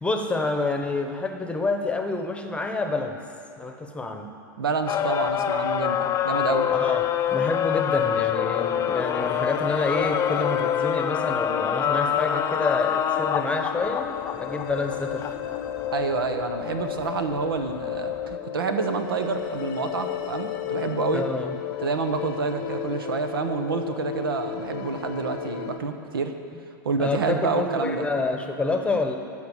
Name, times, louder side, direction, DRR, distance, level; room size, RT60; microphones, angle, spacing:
voice 1, 0.0-3.2 3.6-4.3 6.7-7.0 7.3-15.3 21.1-21.5 27.0-29.2, left 3 dB, 10° left, 5 dB, 1.0 m, -28 dB
voice 2, 4.6-6.7 15.9-21.3 21.8-26.3 26.8-28.1, right 4 dB, 85° right, 7 dB, 0.9 m, -28 dB
sound 1, 4.9-18.3, left 9 dB, 25° left, 0.5 m, -27 dB
sound 2, 8.0-25.8, left 10 dB, 65° left, 0.7 m, -34 dB
13.0 x 4.7 x 8.3 m, 2.6 s
hypercardioid pair, 105°, 12 cm